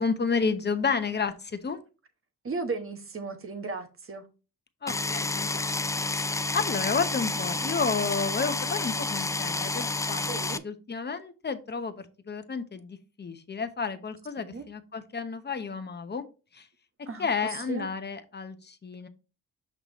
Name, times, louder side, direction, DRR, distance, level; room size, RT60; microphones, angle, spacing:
voice 1, 0.0-1.8 4.8-5.6 6.1-10.3 10.6-16.2 16.5-16.7 17.2-19.1, left 5 dB, 30° left, 0.9 m, -31 dB
voice 2, 2.4-4.2 10.3-10.6 14.4-14.6 17.1-17.9, right 4 dB, 40° right, 1.2 m, -36 dB
sound 1, 4.9-10.6, left 3 dB, 10° left, 0.3 m, -30 dB
5.9 x 5.5 x 3.0 m
cardioid pair, 75°, 34 cm